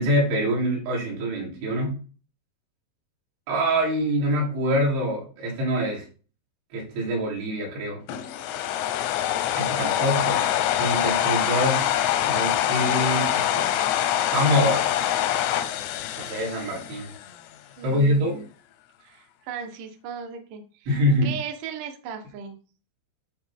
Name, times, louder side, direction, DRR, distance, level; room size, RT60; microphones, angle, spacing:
voice 1, 0.0-2.0 3.5-6.1 6.7-8.0 9.6-10.4 10.8-11.9 12.2-13.7 14.3-15.0 16.2-17.1 17.8-18.4 20.9-21.4, equal, 85° right, -3 dB, 5.4 m, -25 dB
sound 1, 8.1-17.3, left 11 dB, 85° left, 2.8 m, -25 dB
voice 2, 17.8-18.5 19.0-20.9 21.2-22.6, right 7 dB, 65° right, 4 dB, 2.1 m, -37 dB
11.5 x 4.2 x 3.6 m, 0.37 s
omnidirectional pair, 5.2 m